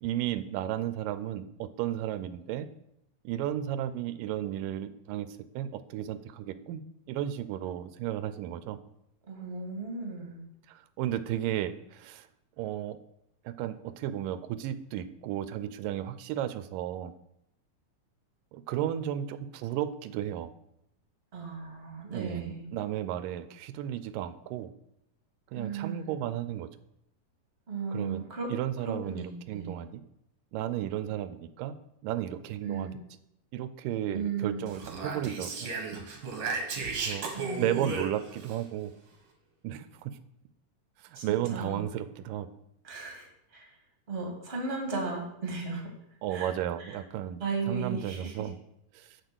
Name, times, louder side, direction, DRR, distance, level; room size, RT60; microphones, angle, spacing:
voice 1, 0.0-2.7 3.2-6.8 7.1-8.8 10.7-12.3 12.6-13.0 13.5-17.1 18.5-20.5 22.1-24.7 25.5-26.7 27.9-28.2 28.5-30.0 30.5-31.8 32.0-32.9 33.5-35.7 37.0-37.3 37.6-38.9 39.6-40.2 41.0-42.5 46.2-48.6 48.9-49.2, right 12 dB, 90° right, 13 dB, 2.3 m, -34 dB
voice 2, 9.3-10.4 21.3-22.7 25.5-26.1 27.7-28.5 28.8-29.8 32.6-33.0 34.1-34.7 36.8-37.0 37.3-37.7 41.1-41.8 42.8-43.7 44.1-45.9 46.3-46.5 46.8-47.0 47.4-48.5, right 4 dB, 20° right, 1 dB, 2.3 m, -36 dB
Speech, 34.7-38.6, right 4 dB, 50° right, 2.1 m, -35 dB
6.9 x 6.7 x 7.9 m, 0.79 s
omnidirectional pair, 3.8 m